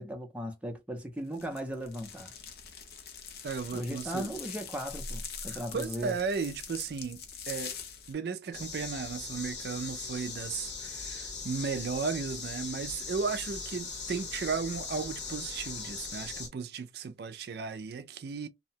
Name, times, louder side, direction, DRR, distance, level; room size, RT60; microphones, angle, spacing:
voice 1, 0.0-2.3 3.7-6.2, equal, 5° right, 0.5 m, -37 dB
sound 1, 1.3-8.1, left 6 dB, 60° left, 0.6 m, -43 dB
voice 2, 3.4-4.3 5.5-7.8 8.1-18.5, right 5 dB, 60° right, 0.4 m, -35 dB
sound 2, 8.5-16.5, left 4 dB, 85° left, 1.1 m, -40 dB
2.7 x 2.1 x 2.7 m
head